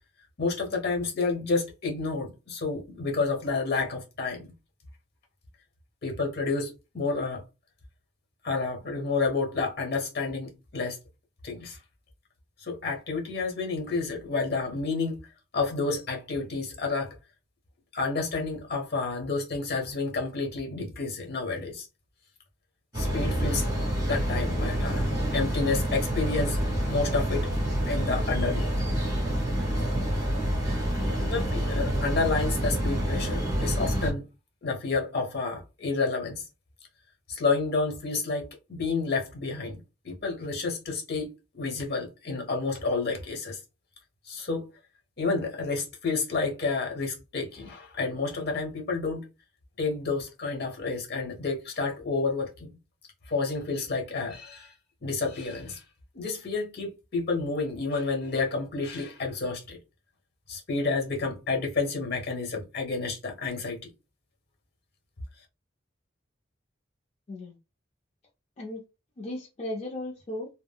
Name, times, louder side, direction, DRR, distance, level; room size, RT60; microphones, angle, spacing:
voice 1, 0.4-4.5 6.0-7.4 8.4-11.0 11.4-11.8 12.6-15.2 15.5-17.2 17.9-21.9 22.9-23.7 24.1-26.6 26.9-27.5 27.9-28.7 31.0-34.3 34.6-36.4 37.3-39.8 40.0-43.6 44.2-44.7 45.2-49.3 49.8-52.7 53.3-54.7 55.0-55.8 56.1-59.8 60.5-63.8, left 4 dB, 55° left, 1.0 m, -30 dB
sound 1, 22.9-34.1, equal, 20° right, 1.4 m, -27 dB
voice 2, 69.2-70.5, left 1 dB, 35° left, 0.5 m, -36 dB
3.6 x 2.0 x 2.2 m
head